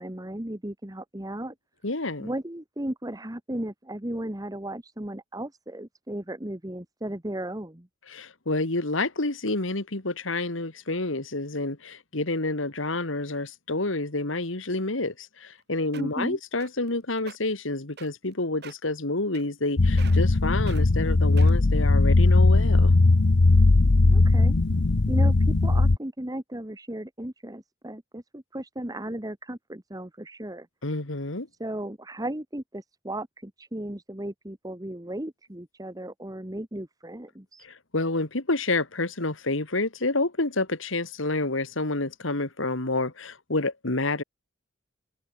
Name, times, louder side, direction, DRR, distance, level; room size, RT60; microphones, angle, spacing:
voice 1, 0.0-1.5 2.2-7.9 16.0-16.4 24.1-24.6 25.1-30.7 31.6-37.6, right 1 dB, 20° right, 1.5 m, -35 dB
voice 2, 1.8-2.3 8.1-23.0 30.8-31.5 37.6-44.2, left 2 dB, 75° left, 2.4 m, -29 dB
sound 1, 15.5-15.6 15.9-16.2 16.6-16.9 17.2-17.4 18.0-18.3 18.6-18.9 19.3-19.7 20.0-20.3 20.7-20.8 21.4-21.7 22.4-22.5, right 5 dB, 55° right, 3.0 m, -44 dB
sound 2, 19.8-26.0, left 2 dB, 60° left, 0.8 m, -19 dB
open air
head